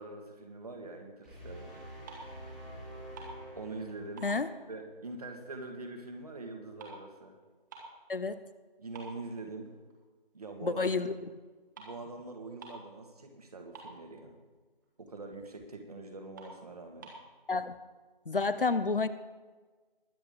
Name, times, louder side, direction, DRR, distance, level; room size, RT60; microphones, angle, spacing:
voice 1, 0.0-1.9 3.6-4.3 4.7-7.4 8.8-9.7 10.3-10.8 11.8-14.4 15.0-17.1, right 3 dB, 40° right, 4 dB, 1.9 m, -44 dB
sound 1, 1.2-4.4, equal, ahead, 2.0 m, -47 dB
sound 2, 2.1-2.5 2.8-3.9 4.2-5.7 6.0-8.1 8.5-8.6 8.9-10.0 10.4-10.6 11.4-11.5 11.7-12.0 12.3-12.4 12.6-13.0 13.3-13.4 13.5-14.4 14.8-14.9 15.3-15.4 15.9-16.0 16.3-17.3, right 3 dB, 20° right, 1.9 m, -50 dB
voice 2, 8.1-8.4 10.6-11.3 17.5-17.7 18.3-19.1, left 4 dB, 65° left, 14 dB, 0.9 m, -30 dB
21.5 x 7.9 x 3.8 m, 1.3 s
figure-of-eight pair, 155°, 29 cm